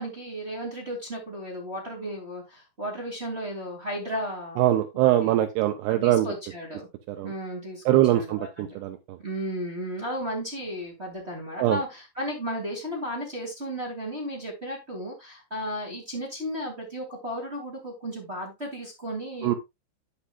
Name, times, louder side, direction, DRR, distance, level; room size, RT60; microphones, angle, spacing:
voice 1, 0.0-4.6 5.2-5.4 5.9-6.9 7.2-8.8 9.2-19.5, equal, 20° right, 1.9 m, -34 dB
voice 2, 4.6-6.3 7.1-7.3 7.9-9.2 11.6-11.8 19.4-19.6, right 13 dB, 80° right, 2.5 m, -23 dB
10.0 x 8.6 x 2.4 m
omnidirectional pair, 5.3 m